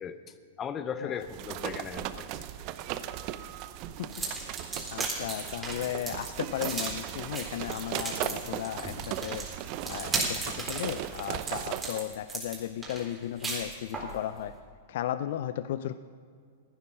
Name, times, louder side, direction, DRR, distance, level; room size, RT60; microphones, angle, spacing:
voice 1, 0.0-2.7, left 7 dB, 25° left, 11 dB, 0.7 m, -38 dB
sound 1, 1.2-12.0, right 12 dB, 45° right, 0.7 m, -37 dB
sound 2, 4.1-14.2, right 3 dB, 15° right, 4.0 m, -36 dB
voice 2, 4.7-9.5 9.9-14.5 14.9-15.9, left 11 dB, 60° left, 13 dB, 0.4 m, -35 dB
16.0 x 9.7 x 6.3 m, 2.1 s
hypercardioid pair, 105°, 0 cm